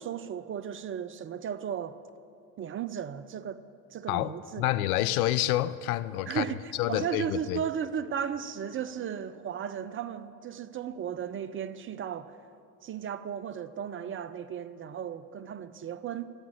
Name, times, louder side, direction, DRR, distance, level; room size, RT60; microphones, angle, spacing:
voice 1, 0.0-2.0 2.6-3.6 3.9-4.6 6.3-12.4 12.8-16.3, right 8 dB, 30° right, 0.6 m, -35 dB
voice 2, 4.1-6.5 6.8-7.6, left 14 dB, 80° left, 0.6 m, -28 dB
11.5 x 8.6 x 9.5 m
hypercardioid pair, 75°, 43 cm